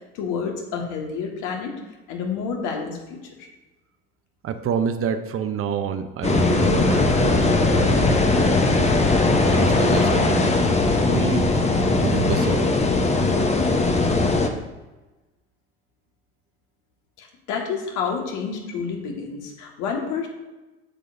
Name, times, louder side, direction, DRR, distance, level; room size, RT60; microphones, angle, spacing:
voice 1, 0.1-1.7 2.1-3.5 17.2-20.3, left 6 dB, 65° left, 1 dB, 1.7 m, -29 dB
voice 2, 4.4-10.8 11.1-12.7, right 7 dB, 40° right, 9 dB, 0.7 m, -28 dB
sound 1, 6.2-14.5, left 3 dB, 20° left, 0.9 m, -19 dB
9.9 x 6.7 x 2.6 m, 1.1 s
hypercardioid pair, 75°, 33 cm